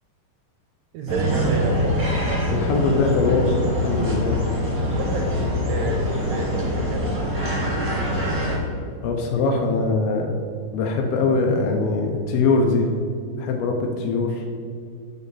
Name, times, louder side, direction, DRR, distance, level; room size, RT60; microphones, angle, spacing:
voice 1, 0.9-2.0 4.9-7.2, right 2 dB, 80° right, 2 dB, 2.0 m, -29 dB
sound 1, 1.1-8.6, equal, 45° right, 1.1 m, -24 dB
voice 2, 2.5-3.5 3.8-4.4 9.0-10.3 10.7-12.9 13.4-14.4, left 3 dB, 80° left, 2 dB, 2.6 m, -22 dB
8.8 x 5.3 x 4.1 m, 2.3 s
omnidirectional pair, 4.5 m